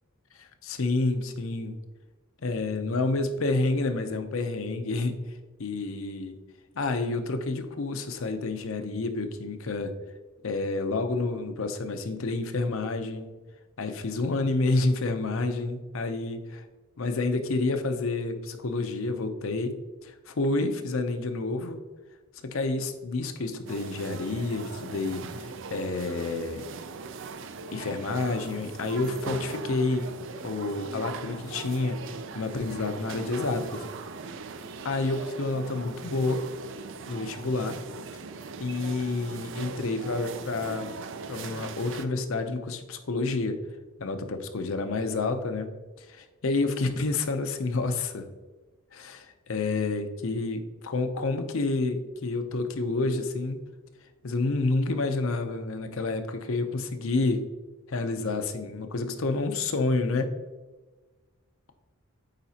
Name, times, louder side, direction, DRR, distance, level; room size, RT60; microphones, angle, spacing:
voice 1, 0.3-1.8 2.4-5.2 5.6-6.4 6.7-9.9 10.4-13.3 13.8-16.6 17.0-19.7 20.0-21.8 22.4-26.7 27.7-30.1 30.4-32.0 32.3-33.8 34.8-36.5 37.1-37.8 38.6-40.9 41.3-43.6 44.0-45.7 46.0-48.3 48.9-53.6 54.2-57.4 57.9-60.3, left 3 dB, 65° left, 7 dB, 0.6 m, -29 dB
sound 1, 23.7-42.1, right 4 dB, 55° right, 0.4 m, -40 dB
9.0 x 4.0 x 2.8 m, 1.2 s
head